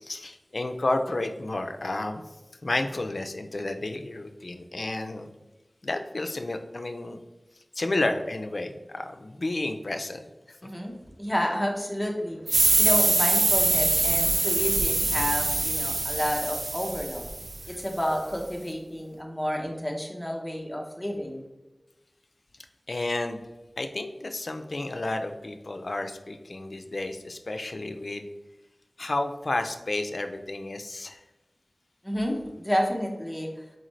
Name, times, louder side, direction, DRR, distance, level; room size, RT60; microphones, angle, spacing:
voice 1, 0.0-2.2 2.6-5.3 5.8-7.2 7.8-10.6 22.9-23.4 23.8-28.3 29.0-31.2, left 2 dB, 70° left, 6 dB, 0.4 m, -31 dB
voice 2, 10.6-17.3 17.6-21.5 32.0-33.5, equal, 10° left, 0 dB, 0.9 m, -30 dB
sound 1, 12.5-17.8, right 2 dB, 80° right, 0.4 m, -24 dB
4.4 x 3.8 x 3.1 m, 1.1 s
wide cardioid pair, 60°, 0 cm